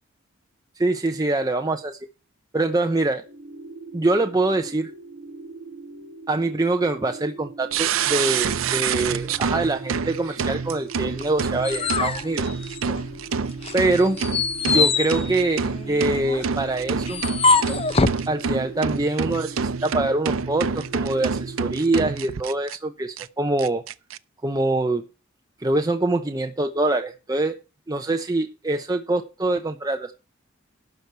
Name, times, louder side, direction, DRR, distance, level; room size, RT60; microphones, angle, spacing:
voice 1, 0.8-2.0 2.5-3.2 3.9-4.9 6.3-12.4 13.7-14.2 14.7-17.2 18.3-23.8 24.4-25.0 25.6-27.6 27.9-30.1, right 2 dB, 20° right, 6 dB, 0.6 m, -24 dB
sound 1, 3.2-22.1, right 3 dB, 50° right, 2.1 m, -41 dB
sound 2, 7.7-22.8 23.2-23.3 23.6-24.2, right 5 dB, 85° right, 0.6 m, -27 dB
sound 3, 11.2-13.2 13.6-18.3, left 4 dB, 30° left, 0.7 m, -24 dB
12.0 x 4.7 x 8.0 m, 0.31 s
head